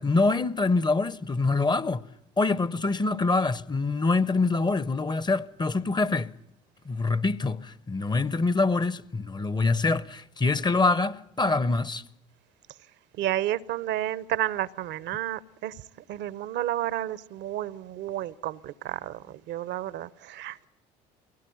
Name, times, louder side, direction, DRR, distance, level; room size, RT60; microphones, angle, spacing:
voice 1, 0.0-2.0 2.4-6.3 6.8-12.0, left 3 dB, 20° left, 0.8 m, -25 dB
voice 2, 13.2-15.8 16.1-20.7, right 13 dB, 60° right, 0.8 m, -31 dB
23.5 x 17.0 x 9.3 m
hypercardioid pair, 65°, 21 cm